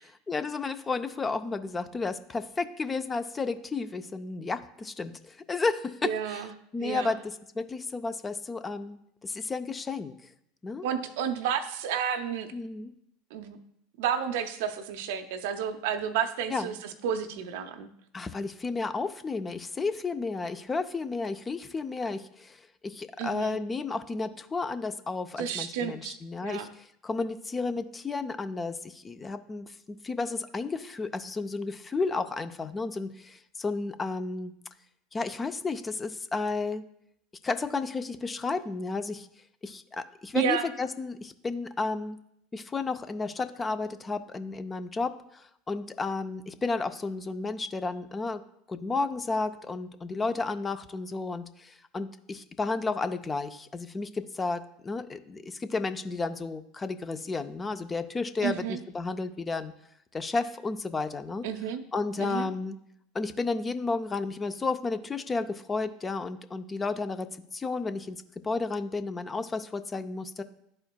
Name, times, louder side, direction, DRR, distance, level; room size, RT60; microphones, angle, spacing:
voice 1, 0.3-6.5 6.7-10.1 10.6-10.9 12.5-12.9 16.5-16.7 18.1-29.8 30.0-34.5 35.1-36.8 37.4-39.3 39.6-42.2 42.5-48.4 48.7-59.7 60.1-61.5 61.9-62.8 63.1-67.3 67.5-68.2 68.4-70.4, left 3 dB, 20° left, 10 dB, 0.4 m, -32 dB
voice 2, 6.0-6.5 6.8-7.1 10.8-12.5 13.3-13.6 14.0-17.9 23.2-23.6 25.4-26.2 26.4-26.7 40.3-40.7 58.4-58.8 61.4-61.8 62.2-62.5, right 8 dB, 65° right, 9 dB, 0.6 m, -31 dB
11.0 x 4.4 x 2.2 m, 0.74 s
hypercardioid pair, 75°, 0 cm